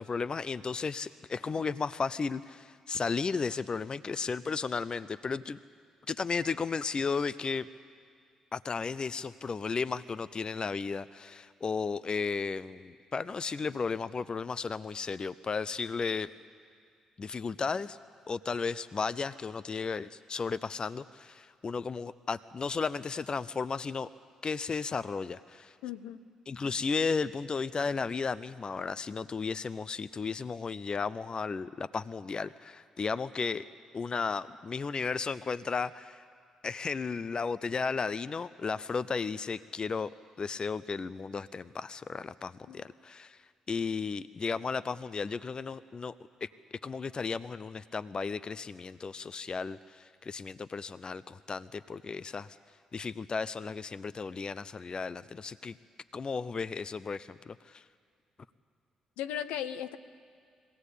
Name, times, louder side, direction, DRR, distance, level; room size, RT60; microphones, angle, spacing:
voice 1, 0.0-5.6 6.1-7.7 8.5-16.3 17.2-18.0 18.3-24.1 24.4-25.7 26.5-33.7 33.9-36.2 36.6-40.1 40.4-43.4 43.7-46.2 46.4-46.5 46.8-52.6 52.9-55.8 56.1-57.8, left 5 dB, 40° left, 15 dB, 0.6 m, -34 dB
voice 2, 25.8-26.2 42.7-42.8 59.2-60.0, left 10 dB, 75° left, 10 dB, 0.8 m, -36 dB
22.0 x 17.5 x 8.3 m, 2.2 s
hypercardioid pair, 45°, 2 cm